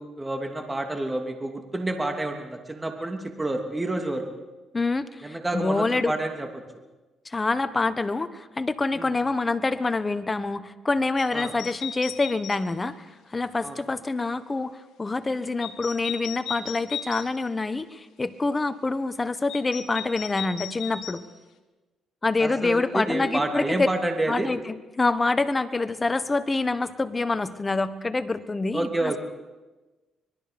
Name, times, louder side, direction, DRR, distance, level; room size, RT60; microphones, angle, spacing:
voice 1, 0.0-4.2 5.2-6.6 8.9-9.1 11.3-11.5 13.6-13.8 22.4-24.5 28.7-29.2, right 2 dB, 15° right, 3 dB, 2.8 m, -29 dB
voice 2, 4.7-6.1 7.2-21.2 22.2-23.9 24.3-29.2, left 3 dB, 25° left, 11 dB, 1.3 m, -26 dB
sound 1, 11.2-12.6 15.6-17.3 19.5-21.2, left 8 dB, 80° left, 1.8 m, -36 dB
25.0 x 21.5 x 5.3 m, 1.2 s
cardioid pair, 90°, 0 cm